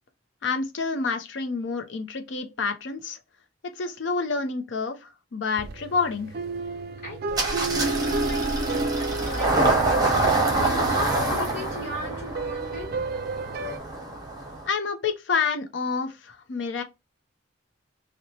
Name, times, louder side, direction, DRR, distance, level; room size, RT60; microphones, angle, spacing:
voice 1, 0.4-3.2 3.6-6.3 14.6-16.8, left 5 dB, 70° left, 0.6 m, -28 dB
sound 1, 5.6-13.8, right 3 dB, 50° right, 0.3 m, -33 dB
voice 2, 7.0-12.9, equal, 40° left, 1.3 m, -38 dB
Engine starting, 7.3-14.7, right 2 dB, 20° right, 0.8 m, -25 dB
2.8 x 2.1 x 2.8 m
head